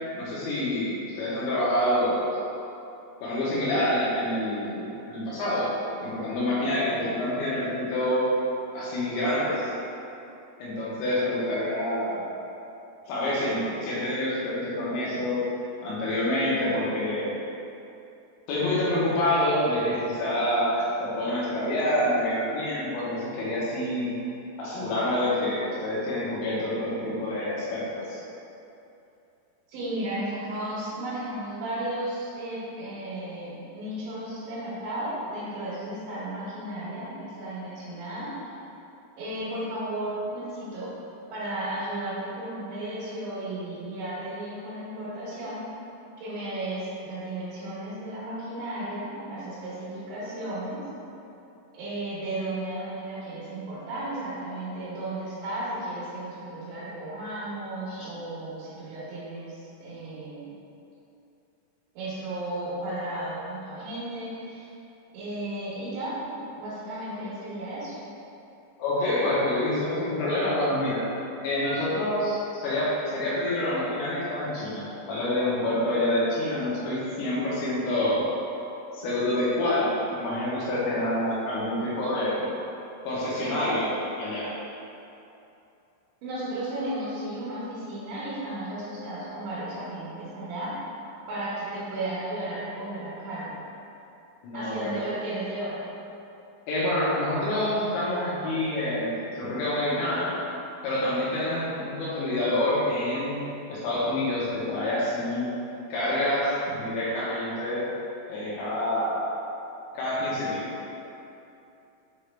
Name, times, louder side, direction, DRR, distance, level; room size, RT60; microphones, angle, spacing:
voice 1, 0.1-2.3 3.2-8.3 8.7-9.7 10.6-12.2 13.1-15.5 15.8-17.4 18.5-24.1 24.6-28.2 57.9-58.1 68.8-71.0 71.4-78.3 78.9-82.5 83.0-84.6 94.4-94.9 96.7-100.3 100.8-103.4 103.7-105.5 105.9-107.9 108.3-109.3 109.9-110.8, left 1 dB, 75° left, -8 dB, 3.2 m, -27 dB
voice 2, 29.7-38.4 39.2-40.9 41.3-45.6 46.2-50.8 51.7-60.5 62.0-64.7 65.1-68.0 86.2-90.8 91.3-93.6 94.5-95.8, right 1 dB, 70° right, -12 dB, 3.5 m, -34 dB
7.7 x 3.6 x 3.3 m, 2.8 s
omnidirectional pair, 5.7 m